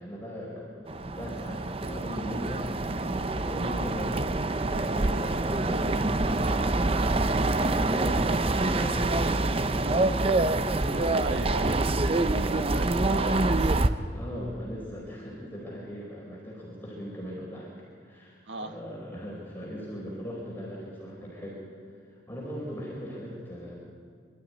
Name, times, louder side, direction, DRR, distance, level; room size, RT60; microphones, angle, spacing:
voice 1, 0.0-2.7 3.0-11.6 12.3-12.6 14.1-17.7 18.0-21.6 22.0-23.8, equal, 10° left, -4 dB, 4.3 m, -39 dB
sound 1, 0.9-13.9, right 2 dB, 30° right, 0.7 m, -26 dB
voice 2, 11.2-11.8 12.5-13.8 18.5-18.7, right 2 dB, 85° right, 5 dB, 1.8 m, -37 dB
24.0 x 13.0 x 9.4 m, 2.1 s
head